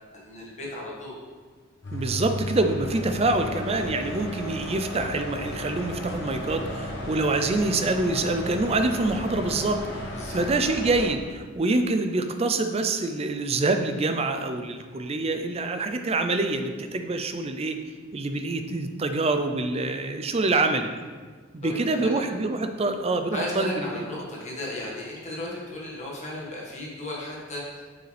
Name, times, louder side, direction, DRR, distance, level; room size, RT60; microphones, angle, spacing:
voice 1, 0.2-1.2 10.1-10.4 21.6-22.2 23.3-27.6, left 1 dB, 35° left, -5 dB, 1.7 m, -35 dB
sound 1, 1.8-11.1, left 1 dB, 55° left, 1.2 m, -34 dB
voice 2, 1.9-17.8 18.1-20.9 21.5-24.0, right 2 dB, 30° right, 7 dB, 0.4 m, -26 dB
6.6 x 6.5 x 3.3 m, 1.5 s
head